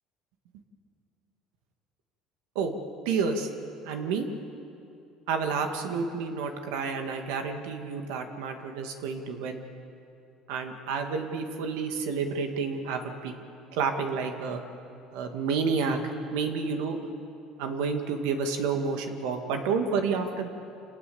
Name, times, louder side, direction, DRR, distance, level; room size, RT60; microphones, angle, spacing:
voice 1, 3.1-3.5 3.9-4.3 5.3-9.6 10.5-13.3 13.7-14.6 15.1-16.0 16.3-17.0 17.6-20.5, right 5 dB, 90° right, 5 dB, 2.2 m, -30 dB
27.0 x 18.5 x 7.2 m, 2.7 s
cardioid pair, 105°, 0 cm